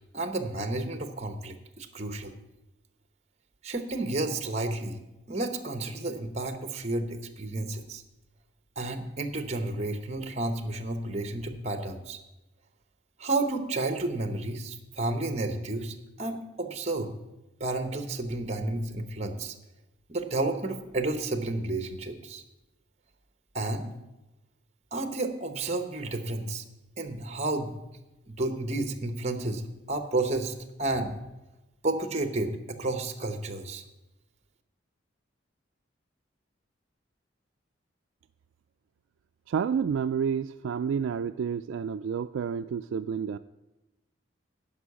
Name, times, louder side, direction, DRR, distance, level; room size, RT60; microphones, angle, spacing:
voice 1, 0.1-2.3 3.6-5.0 5.3-8.0 8.8-12.2 13.2-17.1 17.6-19.5 20.1-22.4 23.5-23.9 24.9-26.6 27.0-27.7 28.3-29.6 29.9-31.1 31.8-33.8, right 2 dB, 35° right, 8 dB, 0.9 m, -31 dB
voice 2, 39.5-43.4, right 7 dB, 85° right, 9 dB, 0.3 m, -29 dB
11.5 x 5.5 x 8.3 m, 0.99 s
head